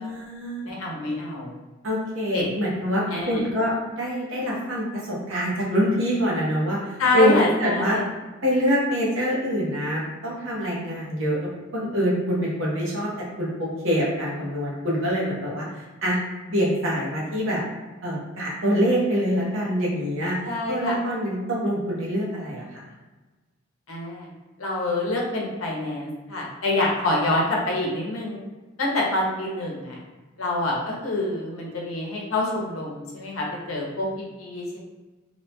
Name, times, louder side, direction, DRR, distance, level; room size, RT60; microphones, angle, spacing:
voice 1, 0.0-0.7 1.8-6.8 7.1-8.0 8.4-13.1 13.4-15.7 16.0-16.2 16.5-17.6 18.0-20.3 20.7-22.8, equal, 65° right, -5 dB, 0.9 m, -25 dB
voice 2, 0.6-1.6 2.3-2.5 3.1-3.4 7.0-8.1 20.4-20.9 23.9-24.3 24.6-28.5 28.8-30.0 30.4-34.1 34.4-34.8, left 2 dB, 90° left, -2 dB, 0.7 m, -26 dB
2.7 x 2.2 x 2.8 m, 1.2 s
head